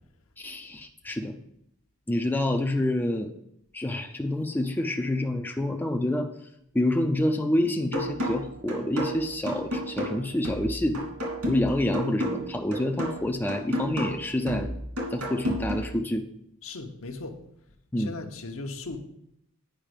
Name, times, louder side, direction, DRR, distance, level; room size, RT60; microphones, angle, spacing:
voice 1, 0.4-1.4 2.1-3.3 3.7-6.3 6.7-11.1 11.5-14.7 15.1-16.2 17.9-18.1, left 1 dB, 10° left, 3 dB, 0.5 m, -27 dB
sound 1, 7.9-15.9, equal, 70° right, 2.9 m, -32 dB
voice 2, 16.6-17.4 18.0-19.0, left 3 dB, 65° left, 5 dB, 0.9 m, -37 dB
9.0 x 5.1 x 5.1 m, 0.75 s
head